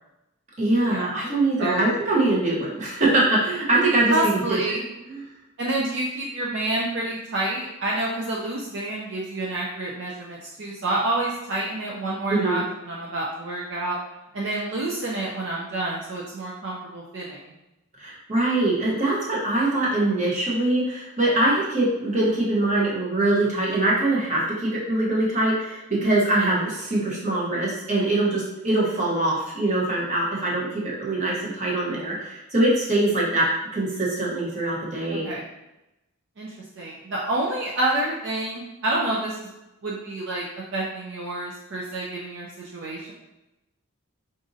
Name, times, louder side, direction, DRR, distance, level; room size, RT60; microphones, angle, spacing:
voice 1, 0.6-4.6 5.1-5.2 12.3-12.6 18.0-35.3, right 2 dB, 35° right, -5 dB, 0.9 m, -23 dB
voice 2, 1.6-1.9 4.1-4.9 5.6-14.0 14.3-17.5 26.0-26.2 35.1-35.5 36.4-39.5 39.8-40.4 40.7-43.1, right 2 dB, 55° right, -4 dB, 0.5 m, -28 dB
4.9 x 2.6 x 2.6 m, 0.94 s
head